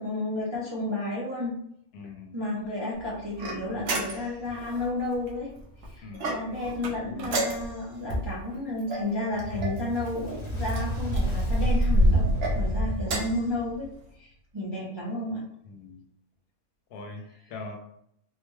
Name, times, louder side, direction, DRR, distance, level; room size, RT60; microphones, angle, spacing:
voice 1, 0.0-1.5 2.3-5.5 5.9-12.3 12.5-13.9 14.1-15.4, left 2 dB, 30° right, -6 dB, 0.4 m, -32 dB
voice 2, 1.9-2.4 6.0-6.5 12.8-13.2 15.6-16.0 16.9-17.8, left 3 dB, 80° left, 3 dB, 1.2 m, -42 dB
Motor vehicle (road) / Engine starting, 2.9-4.2 4.5-9.1 9.4-9.5 9.8-13.9, equal, 90° right, 1.3 m, -28 dB
sound 1, 3.4-4.5 6.1-6.7 7.3-8.0 8.9-9.8 10.7-11.3 12.2-12.6 13.0-13.5, right 2 dB, 55° right, 0.8 m, -33 dB
Fire, 9.3-13.9, equal, 30° left, 0.6 m, -34 dB
4.0 x 2.2 x 3.1 m, 0.71 s
omnidirectional pair, 1.6 m